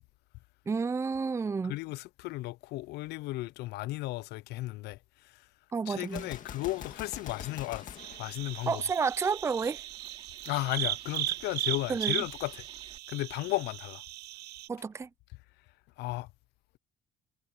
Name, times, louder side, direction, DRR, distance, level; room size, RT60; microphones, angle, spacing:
voice 1, 0.7-1.8 5.7-6.2 8.7-9.8 11.9-12.2 14.7-15.1, right 5 dB, 15° right, 0.4 m, -30 dB
voice 2, 1.6-5.5 5.9-8.8 10.4-12.7 13.1-14.0 16.0-16.3, left 19 dB, 80° left, 0.4 m, -35 dB
sound 1, 5.9-13.0, right 6 dB, 35° right, 4.1 m, -56 dB
Gunshot gunfire, 6.0-9.1, left 9 dB, 50° left, 2.0 m, -45 dB
sound 2, 8.0-14.7, right 16 dB, 80° right, 0.8 m, -37 dB
cardioid pair, 110°, 17 cm